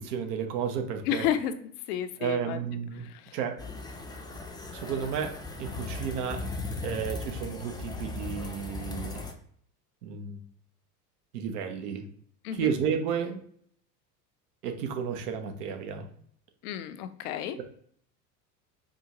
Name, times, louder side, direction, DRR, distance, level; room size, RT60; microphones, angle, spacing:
voice 1, 0.0-1.3 2.2-3.7 4.7-6.5 6.8-9.3 10.0-10.4 11.3-12.0 12.5-13.4 14.6-16.1 17.6-17.7, right 7 dB, 65° right, 6 dB, 1.0 m, -32 dB
voice 2, 1.1-2.6 3.0-3.4 12.4-12.7 16.6-17.6, left 10 dB, 65° left, 10 dB, 0.7 m, -32 dB
sound 1, 3.6-9.3, left 3 dB, 10° left, 0.5 m, -37 dB
4.8 x 2.4 x 2.9 m, 0.63 s
hypercardioid pair, 85°, 50 cm